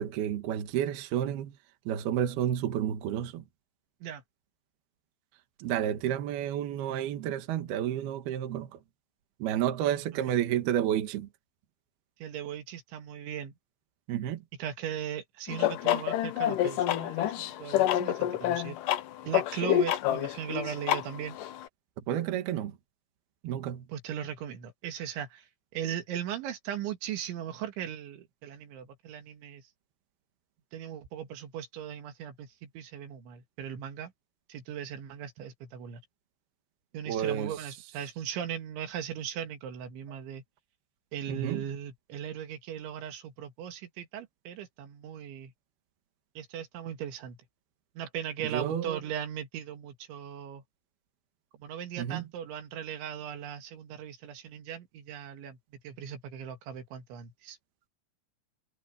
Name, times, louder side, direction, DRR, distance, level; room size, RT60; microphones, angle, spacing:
voice 1, 0.0-1.5 1.9-3.4 5.6-8.8 9.4-11.3 14.1-14.4 22.1-22.8 23.4-23.9 37.1-37.8 41.3-41.7 48.4-49.0 52.0-52.2, right 10 dB, 65° right, 3.4 m, -30 dB
voice 2, 12.2-13.5 14.6-18.8 19.3-21.4 23.9-25.4 25.7-29.6 30.7-34.1 34.5-36.0 36.9-40.4 41.1-45.5 46.4-47.4 48.0-50.6 51.6-55.6 55.8-57.6, right 9 dB, 85° right, 4.5 m, -38 dB
sound 1, 15.5-21.7, left 12 dB, 85° left, 1.8 m, -28 dB
omnidirectional pair, 5.2 m